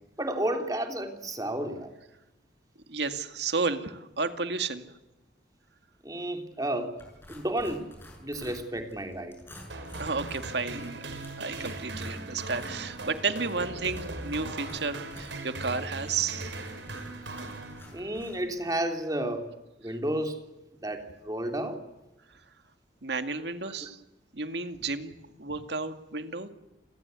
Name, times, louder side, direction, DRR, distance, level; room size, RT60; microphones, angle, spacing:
voice 1, 0.2-1.9 6.0-6.9 7.3-7.9 8.2-9.3 17.9-19.5 19.8-20.4 20.8-21.8 23.8-23.9, right 1 dB, 20° right, 5 dB, 3.2 m, -31 dB
voice 2, 2.9-4.8 10.0-16.5 19.8-19.9 22.3-22.4 23.0-24.0 24.3-26.5, right 4 dB, 75° right, 8 dB, 2.1 m, -32 dB
sound 1, 7.0-18.8, left 1 dB, 10° left, 7.9 m, -50 dB
sound 2, 9.7-18.3, right 2 dB, 90° right, 5.7 m, -39 dB
29.0 x 21.5 x 8.3 m, 0.99 s
head